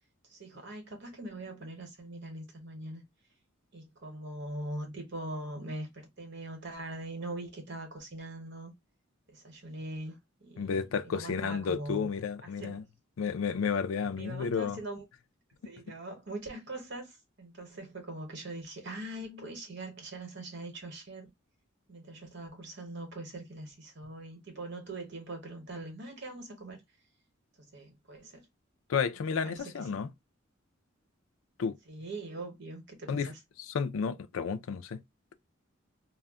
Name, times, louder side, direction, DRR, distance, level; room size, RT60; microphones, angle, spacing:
voice 1, 0.3-3.0 3.7-8.7 9.3-10.7 11.0-12.1 12.4-12.8 14.2-15.0 15.6-21.3 21.9-26.8 27.7-28.4 29.3-29.7 31.9-33.4, right 2 dB, 60° right, 1.0 m, -42 dB
voice 2, 10.6-12.8 13.2-14.8 28.9-30.1 31.6-31.8 33.1-33.3 33.6-35.0, left 6 dB, 85° left, 0.4 m, -32 dB
2.3 x 2.1 x 3.5 m
head